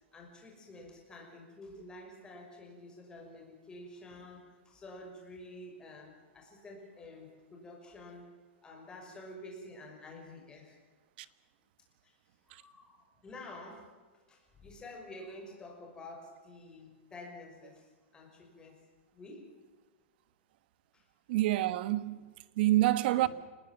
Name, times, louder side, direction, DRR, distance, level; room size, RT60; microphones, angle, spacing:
voice 1, 0.1-8.3 8.6-10.8 12.0-12.2 12.4-13.9 14.3-18.8 19.1-19.4 20.9-21.0 23.1-23.3, left 2 dB, 10° left, 5.8 m, -49 dB
voice 2, 21.3-23.3, right 16 dB, 50° right, 1.3 m, -28 dB
26.5 x 20.0 x 7.4 m
supercardioid pair, 160°, 7 cm